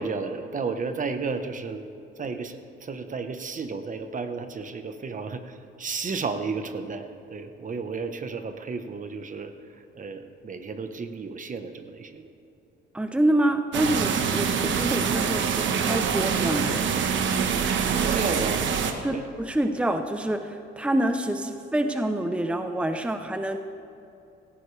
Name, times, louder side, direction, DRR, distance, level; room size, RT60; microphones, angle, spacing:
voice 1, 0.0-9.5 9.9-12.3 17.9-18.7 19.0-19.3, right 4 dB, 40° right, 8 dB, 1.1 m, -33 dB
voice 2, 12.9-16.9 19.0-23.6, right 1 dB, 5° right, 7 dB, 0.8 m, -26 dB
sound 1, 13.7-18.9, right 6 dB, 70° right, 1.2 m, -25 dB
17.0 x 15.0 x 3.4 m, 2.7 s
cardioid pair, 90°, 20 cm